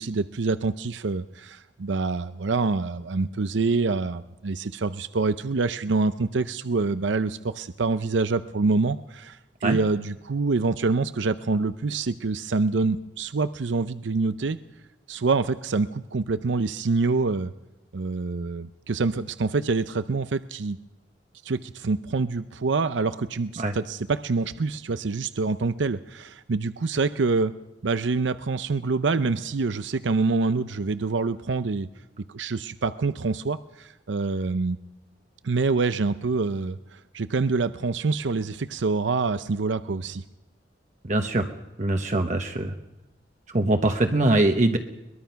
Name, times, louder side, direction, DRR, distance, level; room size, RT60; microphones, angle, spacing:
voice 1, 0.0-14.6 15.1-17.5 17.9-20.8 21.4-27.5 27.8-31.9 32.3-34.8 35.4-40.2, right 3 dB, 75° right, 13 dB, 0.6 m, -26 dB
voice 2, 41.1-41.5 41.8-42.8 43.5-44.8, right 2 dB, 40° right, 5 dB, 1.1 m, -22 dB
22.5 x 21.0 x 5.8 m, 0.99 s
head